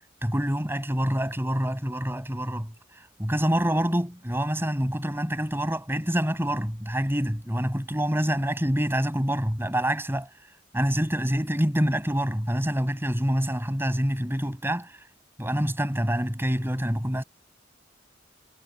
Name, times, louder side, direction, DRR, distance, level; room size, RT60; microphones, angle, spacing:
voice 1, 0.2-10.3 10.7-15.0 15.4-17.2, equal, 10° right, 7.8 m, -26 dB
head